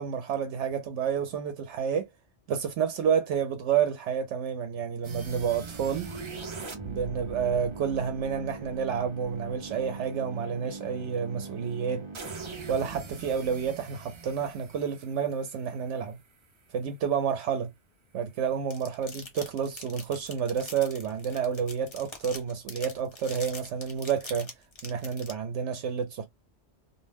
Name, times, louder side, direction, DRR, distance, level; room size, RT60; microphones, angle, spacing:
voice 1, 0.0-2.1 2.5-6.1 6.8-12.1 12.7-16.2 16.7-17.7 18.1-24.5 24.8-26.3, right 7 dB, 80° right, 0.9 m, -29 dB
sound 1, 5.0-16.0, right 4 dB, 45° right, 0.4 m, -41 dB
sound 2, 18.7-25.3, left 3 dB, 30° left, 0.6 m, -43 dB
2.5 x 2.1 x 3.3 m
omnidirectional pair, 1.2 m